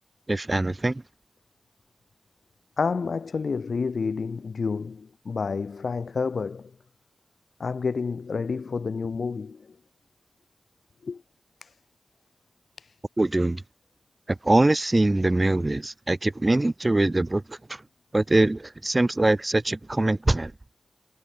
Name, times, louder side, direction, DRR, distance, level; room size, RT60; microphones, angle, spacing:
voice 1, 0.3-1.0 13.2-13.6 14.4-17.6 18.1-20.5, right 2 dB, 30° right, 1.6 m, -23 dB
voice 2, 2.8-6.7 7.6-9.7 11.0-11.2 11.6-11.7 12.8-12.9, left 5 dB, 90° left, 3.2 m, -29 dB
wide cardioid pair, 65°, 0 cm